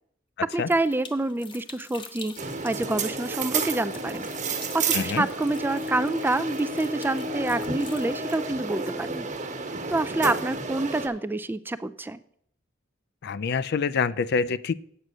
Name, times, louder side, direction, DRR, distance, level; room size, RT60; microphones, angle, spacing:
voice 1, 0.4-4.3 4.7-9.3 9.9-12.2, right 2 dB, 10° right, 14 dB, 0.3 m, -27 dB
sound 1, 0.7-8.5, left 4 dB, 25° left, 1.1 m, -47 dB
sound 2, 2.4-11.1, right 3 dB, 40° right, 1.3 m, -31 dB
voice 2, 4.9-5.3 13.2-14.7, left 5 dB, 55° left, 15 dB, 0.4 m, -26 dB
8.1 x 7.8 x 6.2 m, 0.67 s
head